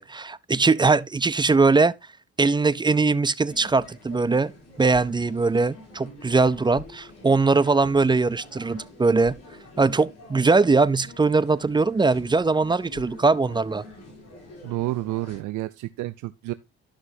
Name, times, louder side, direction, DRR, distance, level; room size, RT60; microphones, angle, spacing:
voice 1, 0.0-1.9 2.4-4.5 4.8-9.4 9.8-13.8, right 3 dB, 15° right, 0.4 m, -21 dB
sound 1, 3.5-15.4, left 2 dB, 55° left, 6.7 m, -45 dB
voice 2, 14.6-16.5, right 17 dB, 85° right, 0.5 m, -30 dB
13.0 x 6.0 x 2.7 m
cardioid pair, 90°, 30 cm